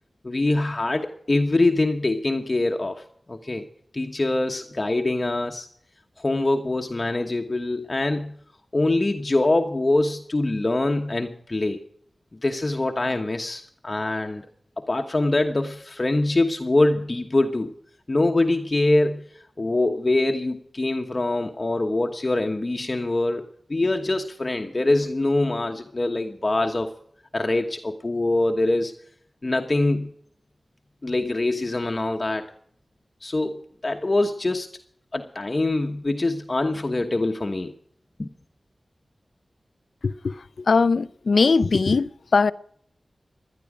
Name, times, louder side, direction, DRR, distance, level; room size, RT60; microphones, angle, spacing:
voice 1, 0.2-3.0 3.3-3.6 3.9-5.7 6.2-8.3 8.7-11.8 12.4-14.5 14.8-17.7 18.1-19.2 19.6-23.4 23.7-26.9 27.3-28.9 29.4-30.1 31.0-32.5 33.2-34.7 35.1-37.7 38.2-38.3, left 2 dB, 40° left, 1.1 m, -24 dB
voice 2, 40.0-42.5, left 4 dB, 80° left, 0.5 m, -21 dB
17.0 x 11.5 x 5.0 m
wide cardioid pair, 60°, 0 cm